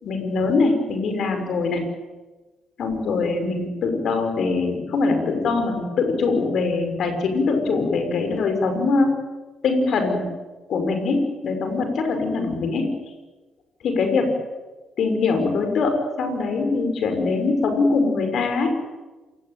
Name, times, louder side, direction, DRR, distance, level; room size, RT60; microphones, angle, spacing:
voice 1, 0.0-1.8 2.8-9.1 9.6-10.3 10.7-12.9 13.8-14.3 15.0-18.7, left 3 dB, 60° left, 6 dB, 6.0 m, -22 dB
27.5 x 18.0 x 9.3 m, 1.2 s
hypercardioid pair, 50°, 0 cm